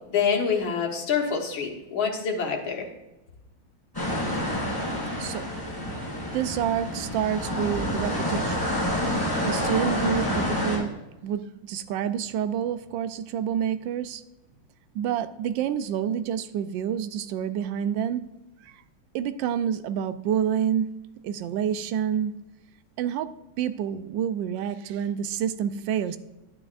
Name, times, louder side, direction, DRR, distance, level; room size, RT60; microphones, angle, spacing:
voice 1, 0.1-2.9, left 6 dB, 75° left, 1 dB, 2.1 m, -26 dB
sound 1, 3.9-10.8, left 1 dB, 10° left, 3.1 m, -28 dB
voice 2, 6.3-8.7 9.4-10.9 11.2-14.2 14.9-18.2 18.6-18.8 19.1-20.9 21.2-22.3 23.0-23.3 23.6-26.2, right 9 dB, 75° right, 12 dB, 1.2 m, -28 dB
10.5 x 9.1 x 2.5 m, 0.99 s
omnidirectional pair, 2.2 m